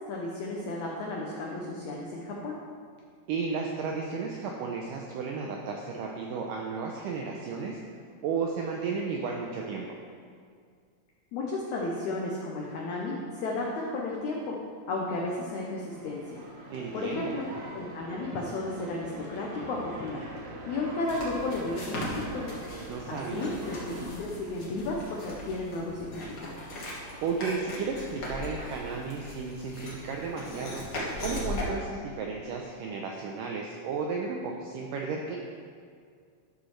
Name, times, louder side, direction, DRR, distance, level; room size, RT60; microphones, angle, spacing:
voice 1, 0.0-2.6 11.3-14.6 14.9-16.4 16.9-17.4 17.7-20.3 20.7-22.5 23.1-26.6, left 2 dB, 90° left, -2 dB, 1.6 m, -33 dB
voice 2, 3.3-7.8 8.2-9.9 16.7-17.4 22.9-23.5 27.2-30.9 31.2-35.4, right 5 dB, 90° right, 0 dB, 1.9 m, -33 dB
sound 1, 15.6-24.0, right 1 dB, 60° right, 2.4 m, -43 dB
sound 2, 21.1-31.7, left 1 dB, 50° left, 1.6 m, -39 dB
12.5 x 6.3 x 3.2 m, 2.1 s
omnidirectional pair, 4.5 m